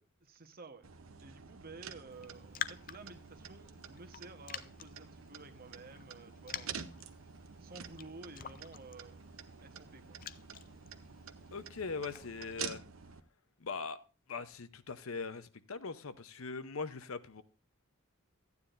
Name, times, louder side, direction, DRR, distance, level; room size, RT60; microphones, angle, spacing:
voice 1, 0.2-0.9 1.2-6.9 7.6-9.2 9.6-10.2, right 3 dB, 45° right, 1.1 m, -52 dB
sound 1, 0.8-13.2, right 7 dB, 70° right, 0.8 m, -48 dB
Raindrop, 2.1-12.8, left 9 dB, 40° left, 0.5 m, -49 dB
voice 2, 11.5-12.8 13.6-14.0 14.3-17.4, left 4 dB, 75° left, 0.8 m, -41 dB
14.5 x 9.6 x 2.6 m
head